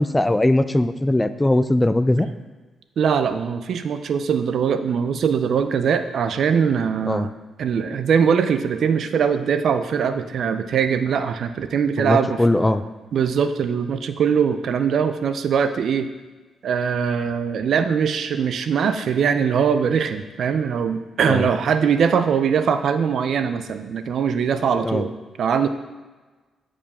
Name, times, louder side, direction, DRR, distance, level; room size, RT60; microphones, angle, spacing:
voice 1, 0.0-2.3 7.1-7.3 12.0-12.8 21.3-21.5 24.8-25.0, left 1 dB, 15° left, 12 dB, 0.4 m, -20 dB
voice 2, 3.0-7.3 7.6-12.4 13.1-16.1 16.6-25.7, right 7 dB, 70° right, 10 dB, 0.4 m, -21 dB
8.9 x 4.9 x 3.6 m, 1.3 s
cardioid pair, 65°, 0 cm